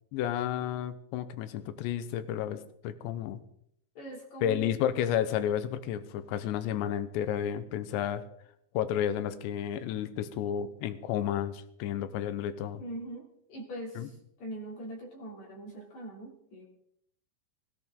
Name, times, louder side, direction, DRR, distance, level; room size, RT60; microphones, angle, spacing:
voice 1, 0.1-3.4 4.4-8.2 8.7-12.8 14.0-14.1, left 10 dB, 75° left, 12 dB, 3.0 m, -31 dB
voice 2, 4.0-4.7 12.8-16.7, right 1 dB, 40° left, 0 dB, 3.7 m, -42 dB
17.5 x 17.0 x 3.8 m, 0.70 s
omnidirectional pair, 5.7 m